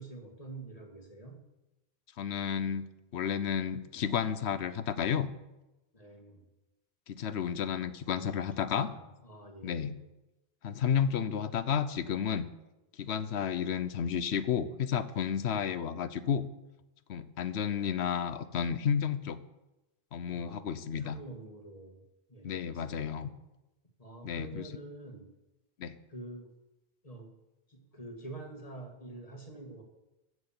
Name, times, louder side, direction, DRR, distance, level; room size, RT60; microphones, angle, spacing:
voice 1, 0.0-1.4 5.9-6.4 8.2-8.4 8.7-9.0 9.2-10.0 20.3-22.0 22.3-23.4 24.0-25.3 26.1-26.5 27.0-27.3 27.7-29.8, right 2 dB, 35° left, 2 dB, 1.9 m, -47 dB
voice 2, 2.2-2.9 3.1-5.3 7.1-8.9 9.6-9.9 10.6-12.5 13.0-16.5 17.1-19.4 20.1-21.2 22.4-23.3 24.2-24.7 25.8-26.0, left 8 dB, 80° left, 14 dB, 1.0 m, -32 dB
14.5 x 6.4 x 7.3 m, 0.99 s
omnidirectional pair, 1.1 m